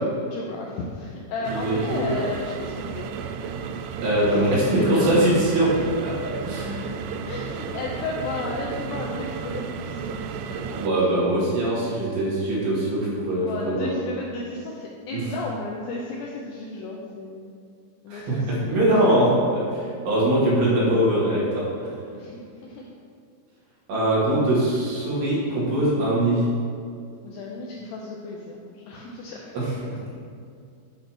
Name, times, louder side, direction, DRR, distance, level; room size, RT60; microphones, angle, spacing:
voice 1, 0.1-3.1 4.2-5.3 6.1-6.9 7.1-11.8 13.4-17.6 18.0-19.2 22.1-22.9 27.2-29.5, left 3 dB, 80° left, -2 dB, 2.4 m, -34 dB
sound 1, 1.4-10.9, right 6 dB, 90° right, 2.4 m, -33 dB
voice 2, 1.5-2.2 4.0-5.7 6.0-6.9 10.7-13.9 15.1-15.2 18.1-21.7 23.9-26.5 29.5-29.9, right 1 dB, 65° right, -8 dB, 4.2 m, -22 dB
9.0 x 4.2 x 6.0 m, 2.4 s
omnidirectional pair, 5.5 m